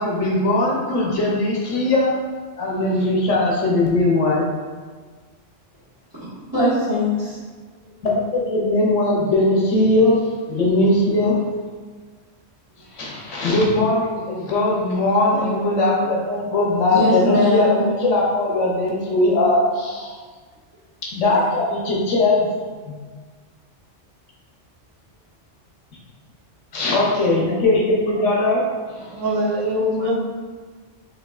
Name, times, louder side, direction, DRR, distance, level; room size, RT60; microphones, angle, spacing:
voice 1, 0.0-2.1 2.6-4.4 8.0-10.2 10.5-11.3 12.9-20.2 21.1-22.5 22.9-23.0 26.7-28.6 28.9-29.1, left 2 dB, 80° left, -4 dB, 1.2 m, -20 dB
voice 2, 6.2-7.4 16.9-17.8, left 2 dB, 15° right, -15 dB, 1.3 m, -20 dB
voice 3, 15.2-16.1 29.1-30.2, equal, 80° right, -2 dB, 1.1 m, -24 dB
6.1 x 3.0 x 2.3 m, 1.5 s
omnidirectional pair, 1.2 m